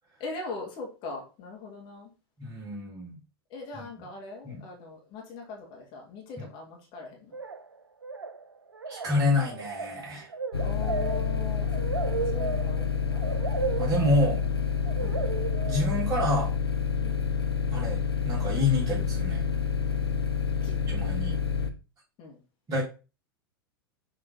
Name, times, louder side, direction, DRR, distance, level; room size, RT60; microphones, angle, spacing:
voice 1, 0.2-2.1 3.5-7.4 10.6-13.2 15.0-15.2 17.0-17.2 20.6-20.8 21.2-21.4 22.2-22.4, left 3 dB, 40° left, 2.2 m, -41 dB
voice 2, 2.4-3.1 4.4-4.6 6.4-6.5 8.9-10.3 13.8-14.4 15.7-16.5 17.7-19.4 20.9-21.4 22.7-22.8, left 2 dB, 30° right, 3.5 m, -28 dB
sound 1, 7.3-7.7 8.0-8.5 8.7-16.3, right 5 dB, 85° right, 0.4 m, -35 dB
sound 2, 10.5-21.7, left 6 dB, 85° left, 0.8 m, -28 dB
6.5 x 3.8 x 4.1 m
figure-of-eight pair, 90°, 13 cm